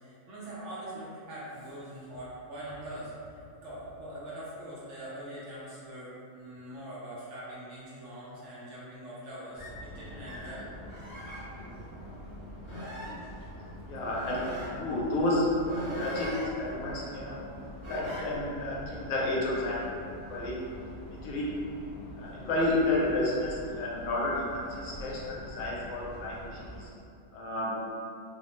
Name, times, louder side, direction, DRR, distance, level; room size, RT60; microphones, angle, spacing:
voice 1, 0.0-10.7, right 1 dB, 65° right, -8 dB, 0.8 m, -43 dB
sound 1, 9.5-26.8, left 1 dB, 20° right, 0.4 m, -45 dB
sound 2, 9.6-9.8 10.2-10.6 10.9-11.4 12.1-12.2 12.6-13.2 14.0-14.7 15.6-16.5 17.8-18.3, equal, 25° left, 0.8 m, -39 dB
voice 2, 13.9-16.3 16.6-17.4 17.9-20.0 20.3-20.6 21.1-21.6 22.2-26.9 27.3-27.8, left 1 dB, 75° left, -5 dB, 0.9 m, -31 dB
2.6 x 2.0 x 2.9 m, 2.5 s
omnidirectional pair, 1.5 m